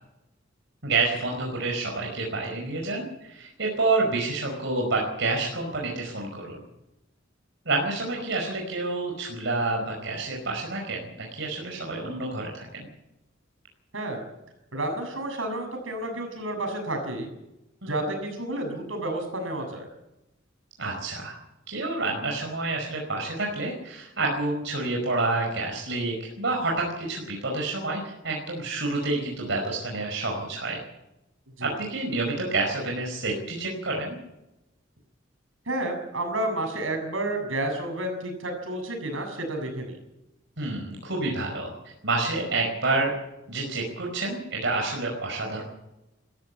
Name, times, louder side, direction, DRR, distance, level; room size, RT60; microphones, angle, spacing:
voice 1, 0.8-6.6 7.6-12.9 17.8-17.9 20.8-21.4 21.7-30.8 31.6-34.2 40.6-41.7 42.0-43.1 43.5-45.6, right 3 dB, 65° right, 0 dB, 5.0 m, -28 dB
voice 2, 14.7-17.3 17.9-19.9 31.6-31.7 35.7-39.9, right 1 dB, 80° right, 4 dB, 7.1 m, -30 dB
21.5 x 14.5 x 8.5 m, 0.92 s
head